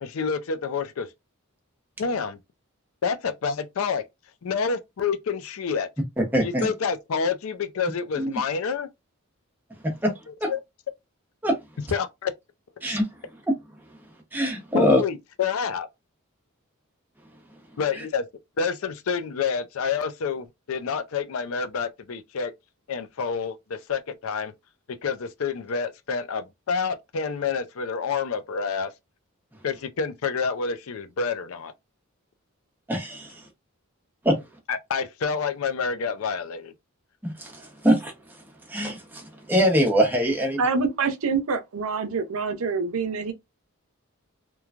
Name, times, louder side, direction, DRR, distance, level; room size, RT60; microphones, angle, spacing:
voice 1, 0.0-1.1 2.0-2.4 3.0-4.0 4.4-5.9 6.4-8.9 10.3-10.6 11.9-12.3 12.8-13.0 14.7-15.9 17.8-18.2 18.6-22.5 22.9-24.5 25.0-28.9 29.6-31.7 34.7-36.7, left 5 dB, 75° left, 0.4 m, -28 dB
voice 2, 6.2-6.7 8.2-8.4 10.0-10.1 10.4-10.5 11.4-11.5 12.8-13.1 14.3-15.0 32.9-33.4 34.2-34.4 37.2-38.1 38.7-40.6, equal, 10° right, 0.8 m, -23 dB
voice 3, 40.6-43.3, right 4 dB, 80° right, 0.6 m, -26 dB
3.0 x 2.2 x 2.4 m
head